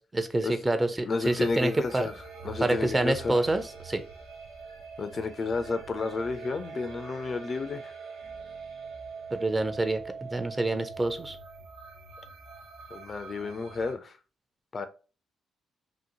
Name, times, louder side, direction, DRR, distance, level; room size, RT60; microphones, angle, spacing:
voice 1, 0.1-2.1 2.6-4.0 9.3-11.4, right 2 dB, 25° right, 9 dB, 0.5 m, -27 dB
voice 2, 1.1-2.1 2.4-3.3 5.0-7.9 12.9-14.2 14.7-14.9, left 4 dB, 45° left, 10 dB, 0.3 m, -31 dB
sound 1, 1.2-13.9, right 5 dB, 75° right, 0.5 m, -44 dB
2.8 x 2.0 x 2.7 m, 0.34 s
hypercardioid pair, 45°, 0 cm